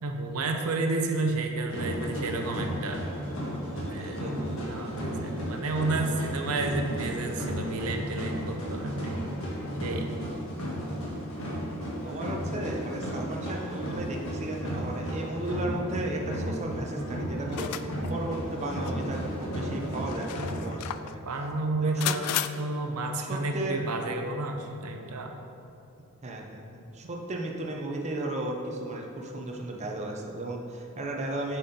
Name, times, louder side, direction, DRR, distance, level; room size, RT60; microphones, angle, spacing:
voice 1, 0.0-3.0 3.7-4.2 4.7-9.2 9.8-10.1 21.2-25.4, right 2 dB, 80° right, 4 dB, 0.7 m, -31 dB
sound 1, 1.7-20.6, equal, 60° left, 1.5 m, -34 dB
voice 2, 3.9-4.4 12.0-21.2 21.8-22.1 23.2-23.8 26.2-31.6, right 1 dB, 30° right, 0 dB, 0.6 m, -35 dB
sound 2, 17.5-18.1 18.9-19.0 19.9-21.1 22.0-22.5, left 12 dB, 80° left, 0.3 m, -33 dB
7.2 x 4.3 x 5.2 m, 2.7 s
head